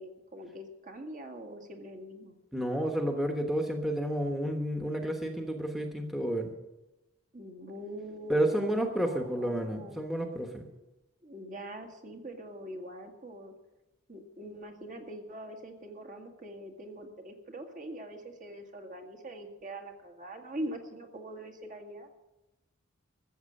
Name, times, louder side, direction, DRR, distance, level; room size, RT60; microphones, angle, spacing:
voice 1, 0.0-2.4 7.3-8.8 9.1-10.0 10.7-10.8 11.2-13.5 14.1-22.1, right 1 dB, 40° right, 3 dB, 1.9 m, -43 dB
voice 2, 2.5-6.5 8.3-10.7, right 1 dB, ahead, 3 dB, 1.2 m, -30 dB
14.0 x 7.5 x 8.8 m, 1.0 s
head